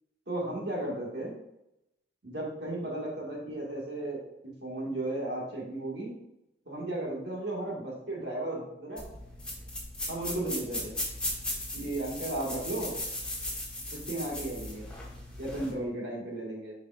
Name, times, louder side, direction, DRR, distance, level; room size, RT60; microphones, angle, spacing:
voice 1, 0.3-1.3 2.2-6.1 6.7-9.1 10.1-10.9 11.7-12.9 13.9-14.8 15.4-16.7, right 1 dB, 60° right, -4 dB, 2.0 m, -35 dB
sound 1, 9.0-15.7, left 1 dB, 5° left, 1.4 m, -37 dB
9.0 x 5.0 x 2.5 m, 0.85 s
head